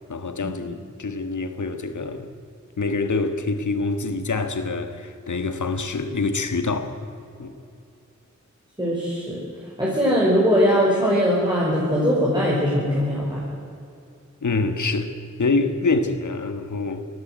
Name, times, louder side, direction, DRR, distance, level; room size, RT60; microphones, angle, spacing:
voice 1, 0.1-2.3 2.8-7.0 7.4-7.5 14.4-17.1, left 3 dB, 80° left, 1.7 m, -26 dB
voice 2, 8.8-9.4 9.8-13.4, equal, 15° right, 5.7 m, -20 dB
19.5 x 16.5 x 8.1 m
wide cardioid pair, 70°, 30 cm